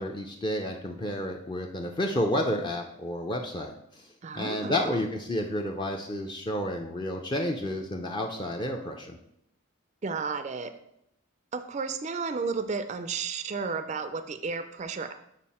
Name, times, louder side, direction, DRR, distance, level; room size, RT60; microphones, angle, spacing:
voice 1, 0.0-4.1 4.4-9.2, left 1 dB, 25° left, 2 dB, 0.5 m, -31 dB
voice 2, 4.2-5.0 10.0-10.7 11.5-15.1, right 4 dB, 35° right, 9 dB, 0.3 m, -33 dB
7.5 x 4.5 x 4.2 m, 0.79 s
head